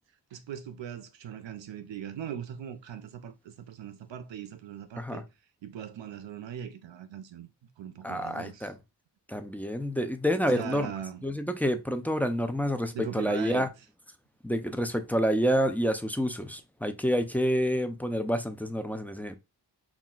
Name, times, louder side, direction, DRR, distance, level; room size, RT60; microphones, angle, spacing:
voice 1, 0.3-5.2 5.6-7.5 7.8-8.7 10.5-11.2 12.9-13.7, right 9 dB, 80° right, 0.6 m, -40 dB
voice 2, 8.0-8.8 9.3-10.9 11.2-13.7 14.4-19.4, equal, 5° left, 0.4 m, -28 dB
5.7 x 2.4 x 2.3 m
wide cardioid pair, 80°, 44 cm